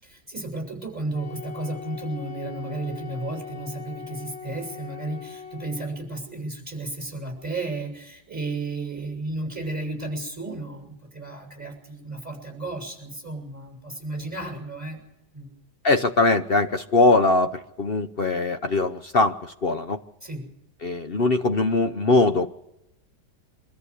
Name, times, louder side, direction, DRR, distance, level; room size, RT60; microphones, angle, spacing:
voice 1, 0.0-15.0 15.3-15.5 20.2-20.5, right 2 dB, 10° right, 3 dB, 6.9 m, -33 dB
Wind instrument woodwind instrument, 1.1-6.0, left 6 dB, 10° left, 6.6 m, -40 dB
voice 2, 15.8-20.0 20.8-22.5, left 3 dB, 50° left, 8 dB, 0.7 m, -21 dB
24.0 x 14.0 x 8.2 m, 0.87 s
omnidirectional pair, 2.0 m